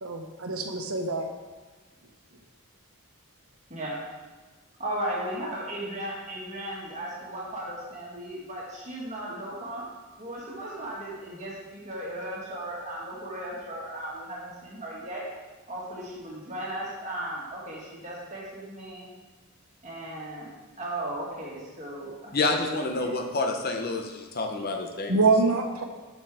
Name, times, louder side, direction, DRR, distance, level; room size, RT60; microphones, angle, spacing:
voice 1, 0.0-1.3 25.1-25.8, right 3 dB, 80° right, 4 dB, 1.1 m, -25 dB
voice 2, 3.7-4.0 4.8-9.9 10.2-15.3 15.7-19.1 19.8-20.5 20.8-22.3 22.9-23.1, right 1 dB, 35° right, -4 dB, 2.0 m, -36 dB
voice 3, 22.3-25.2, left 3 dB, 45° left, 3 dB, 0.9 m, -28 dB
7.8 x 6.6 x 4.9 m, 1.3 s
head